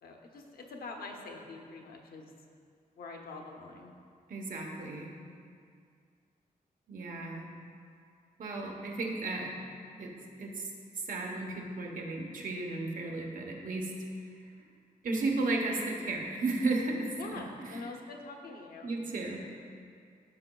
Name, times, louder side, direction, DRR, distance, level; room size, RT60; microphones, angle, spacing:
voice 1, 0.0-2.3 3.0-3.9 17.2-18.9, left 3 dB, 80° left, 2 dB, 0.8 m, -45 dB
voice 2, 4.3-5.2 6.9-7.5 8.4-9.5 10.0-10.1 10.4-10.6 11.1-13.9 15.0-17.8 18.8-19.4, right 2 dB, 65° right, 0 dB, 1.0 m, -34 dB
12.5 x 5.9 x 2.3 m, 2.3 s
wide cardioid pair, 180°, 15 cm